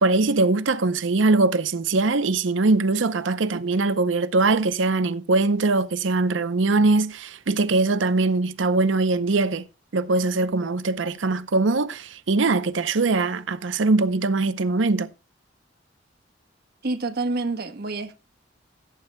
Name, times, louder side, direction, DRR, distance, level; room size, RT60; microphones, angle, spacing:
voice 1, 0.0-9.7 9.9-15.1, right 3 dB, 80° right, 0.7 m, -22 dB
voice 2, 16.8-18.2, right 3 dB, 55° right, 1.2 m, -28 dB
16.5 x 8.9 x 2.2 m
head